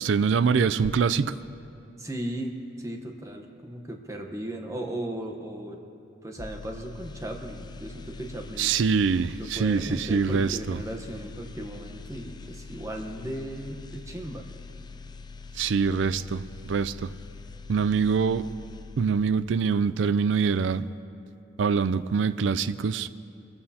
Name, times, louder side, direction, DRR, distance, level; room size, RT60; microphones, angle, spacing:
voice 1, 0.0-1.4 8.6-10.8 15.6-16.4 16.7-17.1 17.7-18.5 19.0-20.9 21.6-23.1, right 5 dB, 70° right, 15 dB, 0.4 m, -24 dB
voice 2, 2.0-5.8 6.2-8.8 9.4-14.4, right 1 dB, 15° right, 3 dB, 0.9 m, -36 dB
sound 1, 6.4-19.5 19.8-20.0, left 4 dB, 20° left, 0.3 m, -44 dB
23.5 x 14.5 x 2.8 m, 2.7 s
head